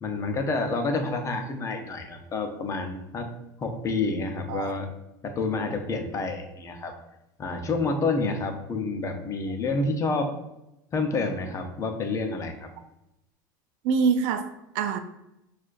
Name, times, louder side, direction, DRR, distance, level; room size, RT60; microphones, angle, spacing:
voice 1, 0.0-3.3 3.6-4.9 5.2-6.9 7.4-10.3 10.9-12.7, left 3 dB, 30° left, 0.7 m, -28 dB
voice 2, 13.8-15.0, right 5 dB, 65° right, 0.4 m, -25 dB
6.1 x 2.5 x 2.5 m
supercardioid pair, 105°, 10 cm